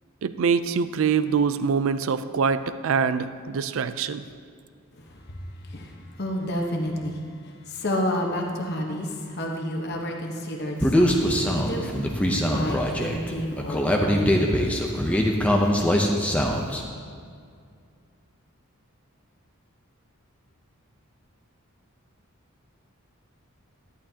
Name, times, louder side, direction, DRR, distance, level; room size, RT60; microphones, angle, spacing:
voice 1, 0.2-4.2, right 6 dB, 65° right, 12 dB, 0.4 m, -24 dB
voice 2, 4.9-14.4 15.0-15.1, equal, 50° left, 1 dB, 1.1 m, -31 dB
Human voice, 10.8-16.8, equal, 5° left, 0.6 m, -22 dB
11.5 x 11.0 x 2.8 m, 2.2 s
head